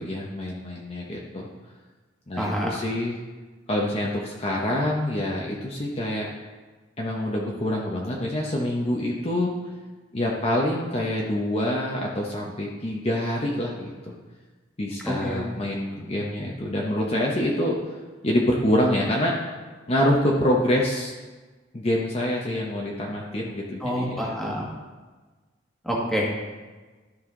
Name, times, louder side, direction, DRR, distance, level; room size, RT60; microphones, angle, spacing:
voice 1, 0.0-1.5 2.3-3.2 3.7-6.3 7.0-9.5 10.1-14.1 14.8-18.0 18.2-19.3 19.9-21.1 21.7-24.6, left 1 dB, 35° left, -2 dB, 0.9 m, -26 dB
voice 2, 2.4-2.7 15.0-15.4 23.8-24.7 25.8-26.3, equal, ahead, -4 dB, 1.6 m, -27 dB
12.5 x 5.6 x 3.8 m, 1.3 s
head